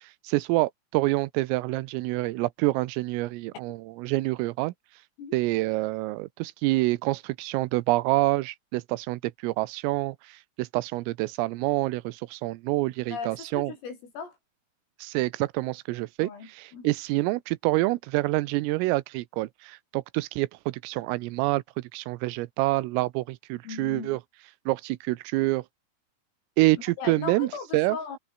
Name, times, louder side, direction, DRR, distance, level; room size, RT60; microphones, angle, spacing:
voice 1, 0.2-4.7 5.3-10.2 10.6-13.7 15.0-24.2 24.7-25.6 26.6-28.0, right 20 dB, 85° right, 3.4 m, -27 dB
voice 2, 13.1-14.4 16.2-16.9 23.7-24.2 27.0-28.2, left 5 dB, 75° left, 9.6 m, -38 dB
omnidirectional pair, 6.0 m